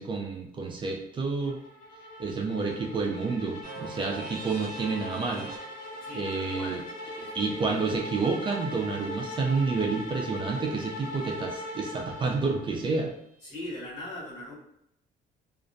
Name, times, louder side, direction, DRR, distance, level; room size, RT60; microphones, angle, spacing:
voice 1, 0.0-1.6 2.2-5.5 6.1-6.8 7.3-13.1, right 4 dB, 30° right, 1 dB, 0.4 m, -29 dB
sound 1, 1.5-12.8, left 1 dB, 50° left, 0.5 m, -40 dB
sound 2, 3.6-11.5, right 3 dB, 55° right, 0.8 m, -47 dB
voice 2, 6.0-6.8 7.2-7.6 13.4-14.6, left 1 dB, 75° left, -7 dB, 1.3 m, -41 dB
2.5 x 2.0 x 2.5 m, 0.76 s
cardioid pair, 110°, 17 cm